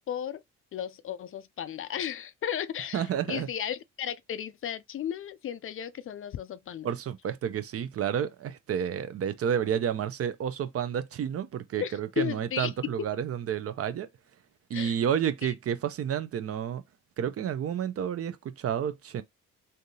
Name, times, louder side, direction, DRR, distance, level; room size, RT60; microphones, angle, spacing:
voice 1, 0.1-0.4 0.7-6.9 11.8-12.7 14.7-15.0 15.4-15.5, left 9 dB, 45° left, 0.4 m, -35 dB
voice 2, 2.9-3.5 6.8-14.1 14.7-16.8 17.2-19.2, right 8 dB, 50° right, 0.6 m, -30 dB
3.4 x 2.7 x 2.7 m
cardioid pair, 90°, 30 cm